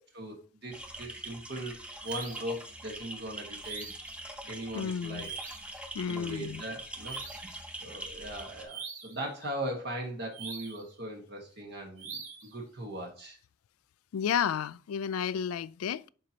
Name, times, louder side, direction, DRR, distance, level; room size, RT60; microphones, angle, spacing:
voice 1, 0.1-1.7 2.0-3.9 4.5-5.3 5.7-7.2 7.8-13.4, right 1 dB, 55° right, 1.4 m, -39 dB
sound 1, 0.7-8.6, right 1 dB, 5° right, 0.8 m, -44 dB
sound 2, 2.0-2.6 3.6-4.2 5.2-5.7 7.0-7.6 8.7-9.2 10.3-10.9 12.0-12.5, right 5 dB, 75° right, 2.2 m, -42 dB
voice 2, 4.7-5.3 5.9-6.6 14.1-16.0, left 8 dB, 90° left, 0.3 m, -32 dB
11.0 x 4.3 x 2.8 m
head